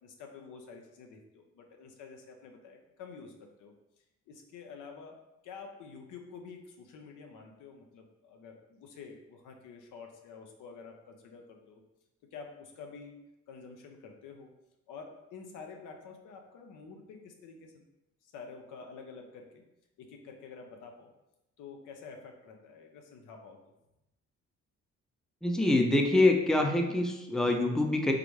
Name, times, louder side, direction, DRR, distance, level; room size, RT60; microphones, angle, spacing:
voice 1, 0.0-3.7 4.3-11.8 12.3-14.5 14.9-17.8 18.2-19.6 20.0-21.1 21.6-23.6, left 5 dB, 90° left, 3 dB, 0.7 m, -49 dB
voice 2, 25.4-28.1, left 2 dB, ahead, 3 dB, 0.5 m, -25 dB
3.8 x 3.4 x 3.2 m, 0.92 s
cardioid pair, 90°, 30 cm